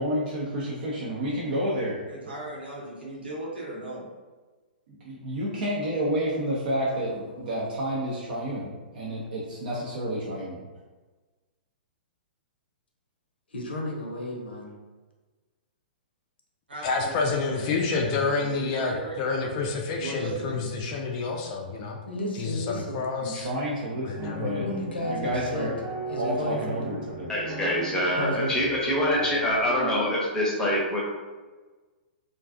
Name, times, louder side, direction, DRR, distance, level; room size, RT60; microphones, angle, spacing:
voice 1, 0.0-2.3 5.0-10.6 23.2-24.6 25.1-25.7 26.1-27.3, equal, 60° right, -5 dB, 0.6 m, -30 dB
voice 2, 2.1-4.0 16.7-19.5 20.0-20.6, right 2 dB, 85° right, -6 dB, 0.8 m, -37 dB
voice 3, 13.5-14.8 22.1-23.1 24.6-25.7 26.1-26.9 28.2-28.7, left 1 dB, 75° left, -1 dB, 0.6 m, -33 dB
voice 4, 16.8-22.0 22.3-23.5 24.0-24.6, left 4 dB, 35° left, 1 dB, 0.3 m, -29 dB
sound 1, 24.0-30.1, right 1 dB, 25° right, 0.8 m, -38 dB
voice 5, 27.3-31.0, left 1 dB, 10° left, -4 dB, 0.7 m, -25 dB
2.5 x 2.3 x 2.4 m, 1.3 s
figure-of-eight pair, 115°, 5 cm